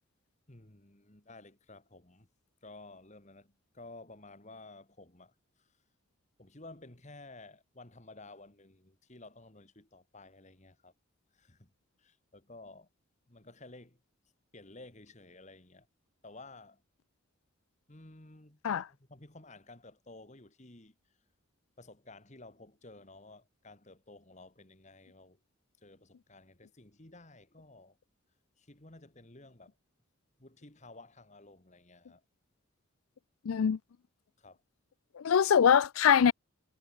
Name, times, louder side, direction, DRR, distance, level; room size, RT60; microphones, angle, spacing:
voice 1, 0.5-2.3 2.6-5.8 6.4-10.9 11.3-11.7 12.0-12.9 13.3-14.0 14.5-15.9 16.2-16.8 17.9-21.0 21.8-25.4 25.8-28.0 28.6-29.8 30.4-32.2 34.4-34.6, left 2 dB, 35° left, 2.0 m, -53 dB
voice 2, 33.5-33.8 35.2-36.3, left 7 dB, 80° left, 0.4 m, -23 dB
head